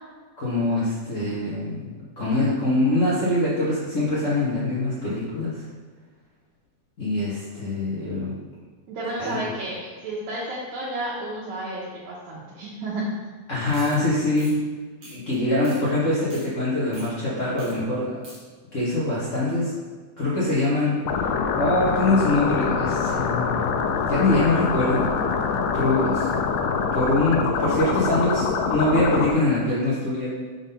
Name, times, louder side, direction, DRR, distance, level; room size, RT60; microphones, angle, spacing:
voice 1, 0.4-1.8 2.2-5.6 7.0-8.3 9.2-9.4 13.5-14.5 15.1-18.1 18.7-19.7 20.2-23.6 24.1-25.1 25.7-26.3 26.9-30.3, left 2 dB, 65° left, -9 dB, 0.7 m, -23 dB
voice 2, 8.9-13.1, right 1 dB, 70° right, -6 dB, 2.4 m, -32 dB
sound 1, 13.7-14.0 14.3-14.5 15.0-15.3 15.6-15.8 16.1-16.5 16.9-17.1 17.6-17.7 18.0-18.4, right 2 dB, 45° right, 1.6 m, -44 dB
sound 2, 21.1-29.3, left 5 dB, 85° left, 2.2 m, -24 dB
5.9 x 4.0 x 5.5 m, 1.5 s
omnidirectional pair, 3.7 m